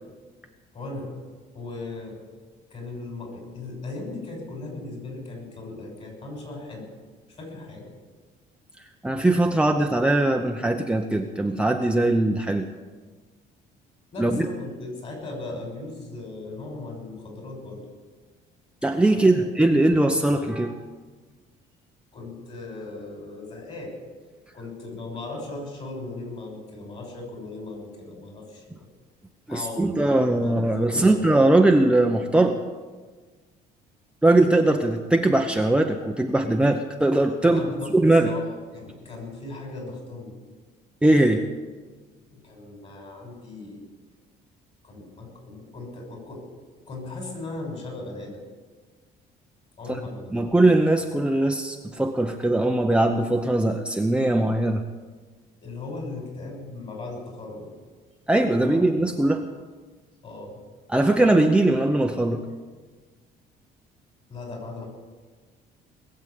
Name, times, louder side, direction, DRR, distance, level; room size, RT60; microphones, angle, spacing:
voice 1, 0.7-1.2 1.5-2.2 2.7-6.9 7.3-7.9 14.1-17.8 19.1-19.4 22.1-23.9 24.5-28.6 29.5-31.3 37.4-38.0 38.2-38.5 38.7-40.3 42.3-43.8 44.8-46.4 46.9-48.4 49.8-50.4 55.6-57.7 58.5-58.8 60.2-60.6 64.3-64.9, left 2 dB, 40° left, 1 dB, 6.4 m, -37 dB
voice 2, 9.0-12.7 14.2-14.5 18.8-20.8 29.5-32.6 34.2-37.6 37.9-38.4 41.0-41.5 49.9-50.0 50.3-54.8 58.3-59.5 60.9-62.4, right 2 dB, 5° right, 3 dB, 0.8 m, -20 dB
20.5 x 7.7 x 8.4 m, 1.4 s
cardioid pair, 110°, 17 cm